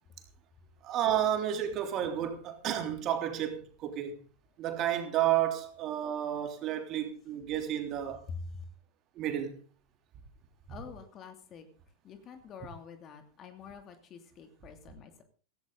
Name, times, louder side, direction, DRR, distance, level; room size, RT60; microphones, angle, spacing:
voice 1, 0.8-4.2 4.6-8.2 9.1-9.6, right 11 dB, 35° right, 3.3 m, -31 dB
voice 2, 8.3-8.6 10.7-11.7 12.0-15.2, left 5 dB, 30° left, 2.7 m, -46 dB
16.5 x 16.0 x 4.0 m
figure-of-eight pair, 90°, 0 cm